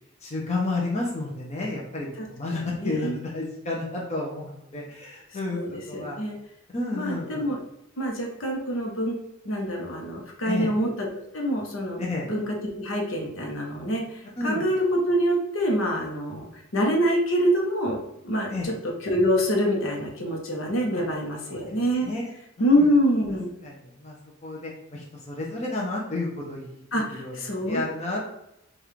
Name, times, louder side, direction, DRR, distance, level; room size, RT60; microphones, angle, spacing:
voice 1, 0.2-5.6 5.9-6.2 6.7-7.4 10.4-10.7 12.0-12.3 14.4-14.6 18.5-18.7 20.9-21.0 21.5-21.7 22.0-22.9 23.6-23.7 24.0-24.1 24.4-27.3 27.7-28.2, left 2 dB, 35° left, -3 dB, 0.7 m, -31 dB
voice 2, 2.2-3.2 5.5-6.4 6.9-7.6 8.0-9.1 9.4-11.1 11.3-12.0 12.3-16.5 16.7-22.1 22.6-23.5 26.9-27.8, equal, 65° left, 0 dB, 1.0 m, -26 dB
5.3 x 2.4 x 3.2 m, 0.82 s
head